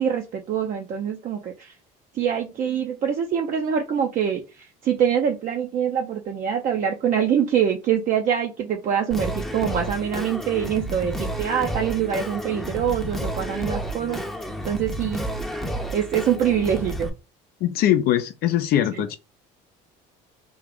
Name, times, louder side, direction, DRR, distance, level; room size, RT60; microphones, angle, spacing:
voice 1, 0.0-1.7 2.1-14.2 14.6-15.3 15.9-17.1 18.9-19.0, right 8 dB, 50° right, 0.6 m, -24 dB
Singing, 9.1-17.1, right 1 dB, ahead, 0.6 m, -31 dB
voice 2, 17.6-19.2, left 11 dB, 60° left, 0.5 m, -21 dB
3.5 x 2.4 x 3.5 m
supercardioid pair, 100°, 18 cm